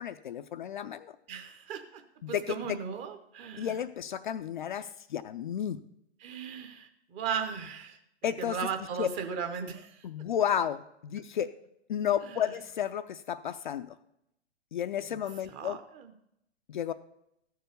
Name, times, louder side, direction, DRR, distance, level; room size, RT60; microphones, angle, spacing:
voice 1, 0.0-1.1 2.2-2.5 3.6-5.8 8.2-8.6 9.0-9.1 10.0-11.5 11.9-14.0 14.7-15.8 16.7-16.9, left 9 dB, 45° left, 10 dB, 0.5 m, -32 dB
voice 2, 1.3-2.0 2.3-3.8 6.2-8.0 8.4-10.0 12.2-12.5 15.1-15.2 15.5-16.1, right 7 dB, 20° right, 6 dB, 0.8 m, -37 dB
14.0 x 4.7 x 6.7 m, 0.79 s
figure-of-eight pair, 125°, 34 cm